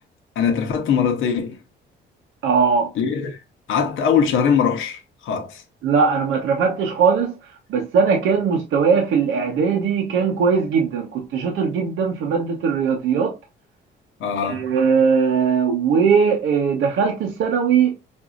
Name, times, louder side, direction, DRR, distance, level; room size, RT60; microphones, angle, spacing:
voice 1, 0.4-1.6 3.0-3.4 3.7-5.6 14.2-14.6, left 7 dB, 80° left, 0.9 m, -21 dB
voice 2, 2.4-2.9 5.8-7.4 7.7-13.4 14.4-17.9, right 6 dB, 90° right, 0.9 m, -19 dB
5.3 x 2.5 x 2.4 m
cardioid pair, 90°, 20 cm